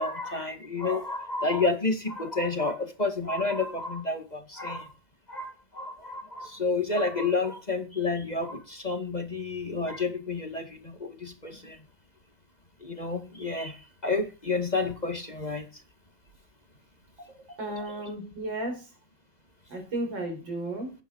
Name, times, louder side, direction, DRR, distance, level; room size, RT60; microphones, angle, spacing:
voice 1, 0.0-4.9 5.3-11.8 12.8-15.7, left 3 dB, 20° left, 6 dB, 2.0 m, -30 dB
voice 2, 17.6-18.9 19.7-20.9, right 1 dB, 80° right, 4 dB, 5.2 m, -33 dB
16.0 x 10.5 x 4.7 m, 0.31 s
omnidirectional pair, 2.1 m